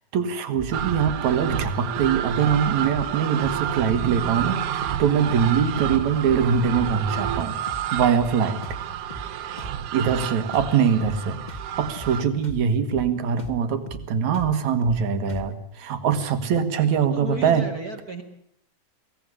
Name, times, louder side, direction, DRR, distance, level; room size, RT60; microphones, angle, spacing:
voice 1, 0.1-7.6 7.9-8.6 9.9-11.4 11.8-17.6, right 7 dB, 70° right, 10 dB, 3.2 m, -23 dB
sound 1, 0.5-0.7 1.0-1.2 1.5-1.7 2.0-2.2 2.4-2.6 2.9-3.1 3.4-3.6 3.9-4.1 4.3-4.6 4.8-5.0 5.3-5.5 5.8-6.0 6.2-6.5 6.7-6.9 7.2-7.4 7.7-8.4 8.6-8.8 9.1-9.3 9.6-9.8 10.0-10.3 10.5-10.7 11.0-11.2 11.5-11.7 12.0-12.2 12.4-12.6 12.9-13.1 13.4-13.6 13.9-14.1 14.3-14.5 14.8-15.0 15.3-15.5, right 2 dB, 15° left, 1.8 m, -38 dB
sound 2, 0.7-12.2, right 9 dB, 90° right, 2.6 m, -30 dB
voice 2, 17.0-18.2, right 2 dB, 35° right, 5 dB, 1.8 m, -35 dB
23.5 x 17.0 x 9.9 m, 0.74 s
omnidirectional pair, 3.4 m